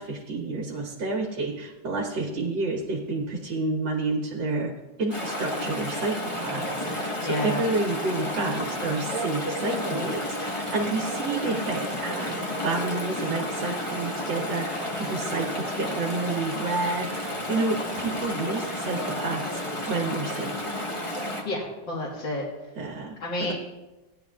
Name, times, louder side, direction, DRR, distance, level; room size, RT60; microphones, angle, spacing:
voice 1, 0.0-19.6 19.9-20.8 22.8-23.5, right 3 dB, 65° right, 0 dB, 1.8 m, -30 dB
Chatter / Stream, 5.1-21.4, left 1 dB, 20° left, 1.1 m, -31 dB
voice 2, 7.2-7.6 21.4-22.5 23.2-23.5, left 1 dB, 65° left, -5 dB, 2.4 m, -30 dB
16.5 x 11.0 x 2.4 m, 1.1 s
omnidirectional pair, 2.2 m